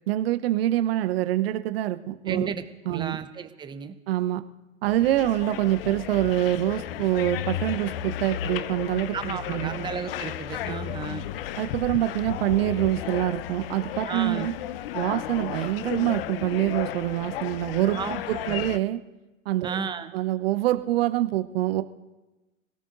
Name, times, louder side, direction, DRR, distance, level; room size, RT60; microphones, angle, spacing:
voice 1, 0.1-2.5 2.9-3.2 4.1-4.4 4.8-9.8 10.7-10.8 11.6-14.5 14.9-18.0 18.3-19.0 19.5-19.8 20.1-21.8, right 14 dB, 45° right, 10 dB, 1.0 m, -25 dB
voice 2, 2.3-3.9 9.1-11.3 14.1-14.5 17.9-18.2 18.5-18.6 19.6-20.1, right 6 dB, 10° right, 10 dB, 0.8 m, -33 dB
sound 1, 4.9-18.8, left 11 dB, 45° left, 0.8 m, -34 dB
27.0 x 17.5 x 2.6 m, 1.1 s
hypercardioid pair, 115°, 40 cm